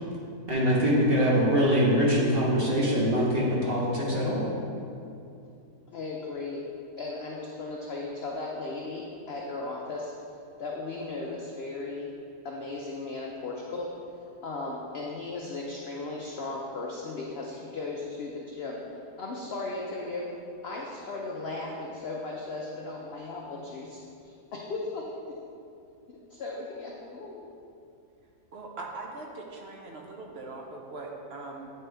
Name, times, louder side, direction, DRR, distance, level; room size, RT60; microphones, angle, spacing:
voice 1, 0.5-4.4, equal, 40° right, -5 dB, 1.2 m, -23 dB
voice 2, 5.9-6.6 7.0-10.1 10.6-12.1 12.4-13.9 14.2-18.8 19.2-20.2 20.6-25.0 26.1-27.5, left 3 dB, 75° left, -2 dB, 0.5 m, -36 dB
voice 3, 28.5-31.7, right 3 dB, 65° right, 0 dB, 0.6 m, -41 dB
9.0 x 4.4 x 3.3 m, 2.6 s
omnidirectional pair, 1.8 m